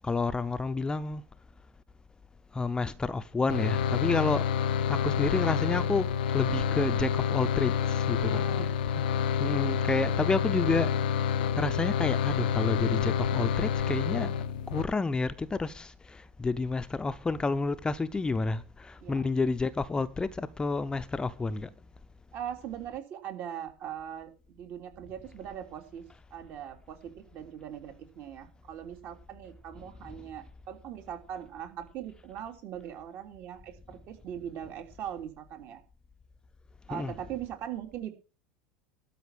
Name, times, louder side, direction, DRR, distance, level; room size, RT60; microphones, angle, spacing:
voice 1, 0.0-1.2 2.5-8.4 9.4-14.3 14.7-21.7 30.1-30.3 36.9-37.1, left 3 dB, 15° left, 0.8 m, -30 dB
sound 1, 3.5-14.8, left 8 dB, 70° left, 0.7 m, -28 dB
voice 2, 8.2-8.7 14.1-14.4 19.0-19.2 22.3-26.0 26.3-35.8 36.9-38.1, right 10 dB, 45° right, 3.2 m, -41 dB
12.5 x 5.9 x 9.1 m
hypercardioid pair, 80°, 5 cm